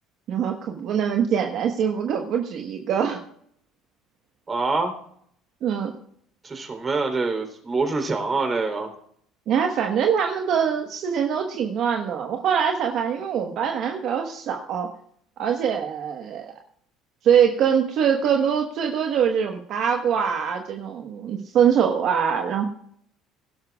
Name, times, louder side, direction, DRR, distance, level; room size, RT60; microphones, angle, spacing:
voice 1, 0.3-3.2 5.6-5.9 9.5-14.9 15.4-16.5 17.2-22.6, right 8 dB, 60° right, 2 dB, 1.3 m, -23 dB
voice 2, 4.5-4.9 6.4-8.9, right 3 dB, 25° right, 5 dB, 3.6 m, -25 dB
21.5 x 12.0 x 2.4 m, 0.66 s
supercardioid pair, 95°, 0 cm